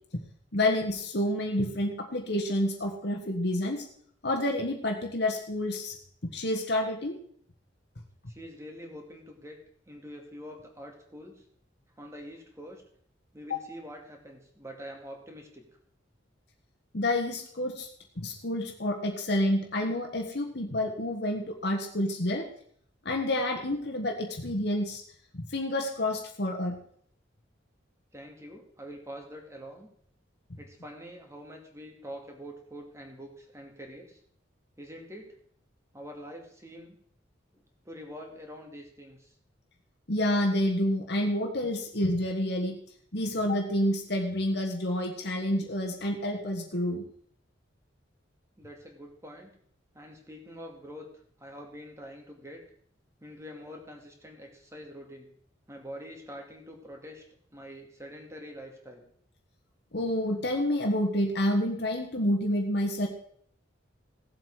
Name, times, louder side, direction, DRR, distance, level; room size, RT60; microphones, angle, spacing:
voice 1, 0.5-3.8 4.2-6.0 6.2-7.2 13.5-13.6 16.9-17.9 18.2-22.5 23.0-25.0 25.3-26.8 40.1-42.8 43.1-47.0 59.9-63.1, left 1 dB, 60° left, 1 dB, 1.5 m, -29 dB
voice 2, 8.3-9.6 9.9-11.4 12.0-12.8 13.3-15.6 28.1-29.9 30.6-34.2 34.8-35.3 35.9-36.9 37.5-39.3 48.6-49.5 49.9-52.6 53.2-55.3 55.7-57.2 57.5-59.1, equal, 15° right, 2 dB, 2.3 m, -45 dB
16.5 x 7.8 x 4.9 m, 0.62 s
head